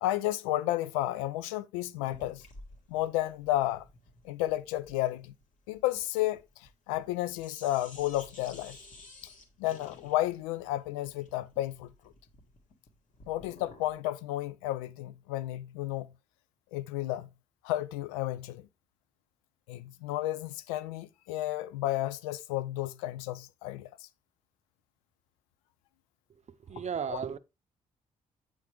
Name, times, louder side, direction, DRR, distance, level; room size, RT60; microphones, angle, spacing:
voice 1, 0.0-2.5 2.9-3.8 4.2-5.3 5.7-8.8 9.6-11.9 13.3-16.1 16.7-17.3 17.6-18.7 19.7-24.1 27.1-27.2, left 15 dB, 80° left, 0.4 m, -32 dB
sound 1, 2.0-7.1 7.4-14.0, left 2 dB, 50° left, 1.6 m, -53 dB
voice 2, 26.7-27.4, right 7 dB, 40° right, 0.6 m, -34 dB
8.2 x 5.1 x 3.1 m
hypercardioid pair, 40°, 17 cm